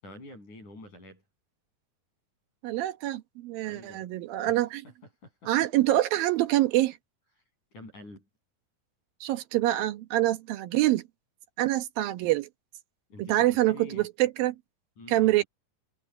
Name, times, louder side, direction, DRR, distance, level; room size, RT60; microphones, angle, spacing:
voice 1, 0.0-1.2 3.6-4.1 4.5-4.9 5.2-5.5 7.7-8.3 13.1-14.1 15.0-15.5, left 1 dB, 55° left, 9.3 m, -47 dB
voice 2, 2.6-4.8 5.5-7.0 9.2-11.0 11.6-12.5 13.2-14.6 15.1-15.4, right 15 dB, 80° right, 2.9 m, -25 dB
omnidirectional pair, 4.1 m